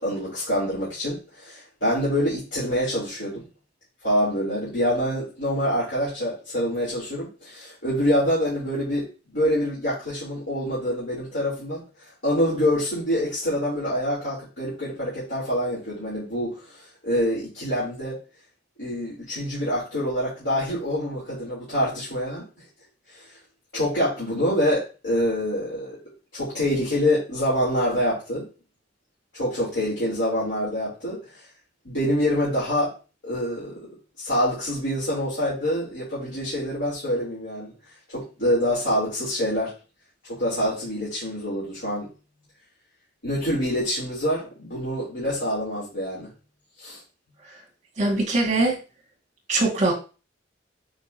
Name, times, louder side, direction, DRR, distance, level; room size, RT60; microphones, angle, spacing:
voice 1, 0.0-3.4 4.0-11.8 12.2-16.5 17.0-18.2 18.8-22.5 23.7-26.0 26.3-28.5 29.3-31.2 31.9-32.9 33.2-33.7 34.2-37.7 38.1-39.7 40.3-42.1 43.2-46.3 46.8-47.0, equal, 75° left, -9 dB, 3.6 m, -26 dB
voice 2, 48.0-48.8 49.5-49.9, right 2 dB, 40° right, 2 dB, 2.2 m, -21 dB
7.4 x 5.2 x 2.9 m, 0.33 s
head